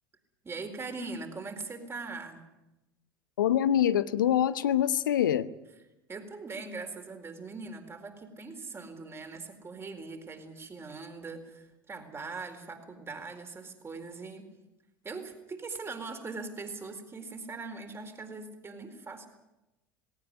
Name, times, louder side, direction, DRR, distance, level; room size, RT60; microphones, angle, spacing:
voice 1, 0.4-2.4 6.1-14.5 15.0-19.3, right 3 dB, 25° right, 5 dB, 4.3 m, -41 dB
voice 2, 3.4-5.5, left 10 dB, 75° left, 15 dB, 0.8 m, -25 dB
19.0 x 18.0 x 9.5 m, 0.95 s
figure-of-eight pair, 70°, 11 cm